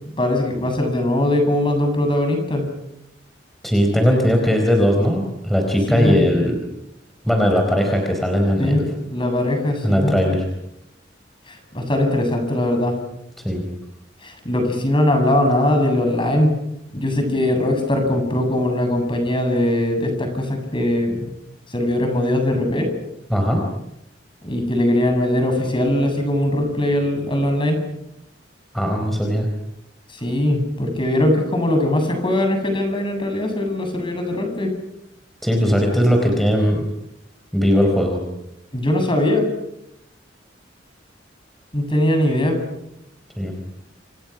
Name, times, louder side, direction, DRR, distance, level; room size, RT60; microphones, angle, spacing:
voice 1, 0.2-2.7 5.9-6.2 8.6-10.2 11.5-12.9 14.2-16.6 16.9-21.3 21.7-22.9 24.4-27.8 30.1-34.7 38.7-39.5 41.7-42.6, left 1 dB, 25° left, 4 dB, 7.8 m, -20 dB
voice 2, 3.6-6.6 7.2-8.9 9.8-10.5 13.4-13.6 23.3-23.7 28.7-29.5 35.4-36.8 37.5-38.2 43.4-43.5, equal, ahead, 1 dB, 4.4 m, -18 dB
29.0 x 28.0 x 6.2 m, 0.80 s
head